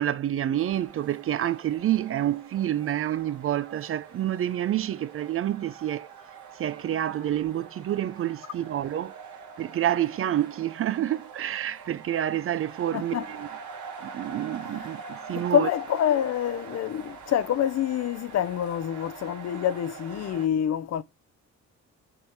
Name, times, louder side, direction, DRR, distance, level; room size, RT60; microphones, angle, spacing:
voice 1, 0.0-6.1 6.5-9.2 9.6-13.5 14.0-15.7, right 11 dB, 45° right, 0.5 m, -28 dB
sound 1, 0.6-20.5, right 5 dB, 75° right, 1.8 m, -44 dB
voice 2, 12.9-13.3 14.6-14.9 15.3-21.0, left 10 dB, 55° left, 0.6 m, -27 dB
9.8 x 3.6 x 4.5 m
cardioid pair, 90°, 30 cm